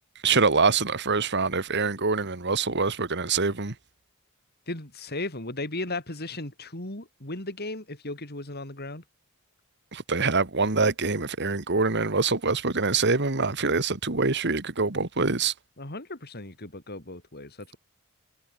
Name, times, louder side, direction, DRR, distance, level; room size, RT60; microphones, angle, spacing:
voice 1, 0.2-3.7 9.9-15.5, right 4 dB, 55° right, 2.0 m, -25 dB
voice 2, 4.7-9.0 15.8-17.8, left 2 dB, 45° left, 5.0 m, -36 dB
head